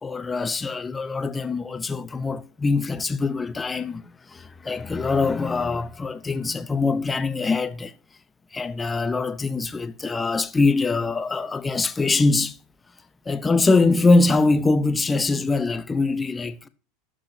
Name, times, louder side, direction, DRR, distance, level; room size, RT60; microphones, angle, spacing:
voice 1, 0.0-7.9 8.5-12.6 13.3-16.7, left 3 dB, 15° left, 0.5 m, -23 dB
16.5 x 6.1 x 2.7 m
hypercardioid pair, 95°, 0 cm